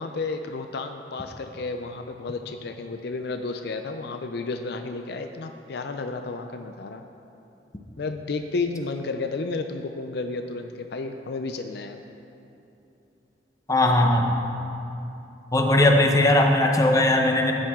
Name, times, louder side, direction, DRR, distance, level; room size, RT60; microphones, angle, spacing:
voice 1, 0.0-7.0 8.0-12.0, left 3 dB, 65° left, 6 dB, 0.5 m, -32 dB
voice 2, 13.7-14.3 15.5-17.5, left 1 dB, 20° left, 2 dB, 0.9 m, -19 dB
13.5 x 8.9 x 3.7 m, 2.9 s
head